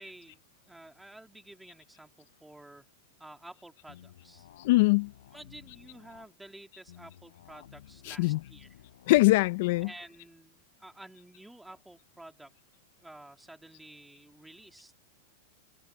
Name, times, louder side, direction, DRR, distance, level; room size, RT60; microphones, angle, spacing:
voice 1, 0.0-2.9 3.2-4.5 5.3-8.9 9.8-12.5 13.0-14.9, right 1 dB, 5° right, 3.2 m, -51 dB
sound 1, 3.9-6.3 6.9-9.9, left 11 dB, 85° left, 6.5 m, -54 dB
voice 2, 4.6-5.1 8.1-8.4 9.1-9.9, left 20 dB, 60° left, 0.6 m, -22 dB
open air
supercardioid pair, 145°, 0 cm